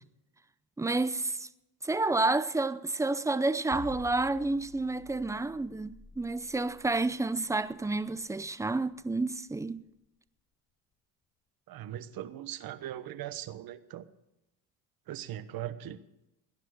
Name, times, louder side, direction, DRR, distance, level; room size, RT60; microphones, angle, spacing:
voice 1, 0.8-1.5 1.8-9.8, right 2 dB, 5° right, 0.5 m, -30 dB
sound 1, 3.7-9.9, left 5 dB, 25° left, 1.0 m, -51 dB
voice 2, 11.7-14.0 15.1-16.0, right 12 dB, 55° right, 1.2 m, -39 dB
18.5 x 10.5 x 6.5 m
supercardioid pair, 95°, 44 cm